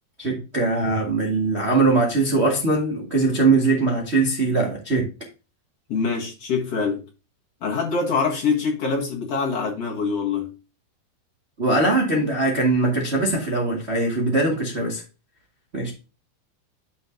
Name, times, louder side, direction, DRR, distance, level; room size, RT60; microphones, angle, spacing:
voice 1, 0.2-5.1 11.6-15.0 15.7-15.9, right 3 dB, 80° right, 0.5 m, -21 dB
voice 2, 5.9-7.0 7.6-10.5, left 5 dB, 50° left, 2.1 m, -24 dB
11.0 x 6.2 x 2.7 m
omnidirectional pair, 4.6 m